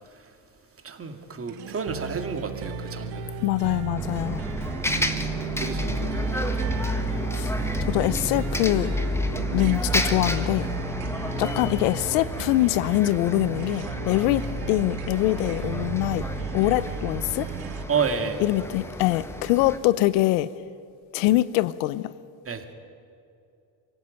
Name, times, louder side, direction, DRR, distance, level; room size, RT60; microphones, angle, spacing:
voice 1, 0.8-3.3 5.6-6.5 17.9-18.4 22.5-22.7, right 5 dB, 25° right, 2.3 m, -30 dB
sound 1, 1.5-17.8, right 8 dB, 80° right, 1.7 m, -35 dB
voice 2, 3.4-4.4 7.3-7.5 7.8-8.9 9.5-10.7 11.4-14.4 14.7-16.2 16.5-17.5 18.4-20.5 21.1-22.1, left 17 dB, 85° left, 0.9 m, -23 dB
Bus, 4.0-19.8, left 1 dB, 5° left, 1.5 m, -30 dB
23.5 x 16.5 x 9.0 m
supercardioid pair, 105°, 50 cm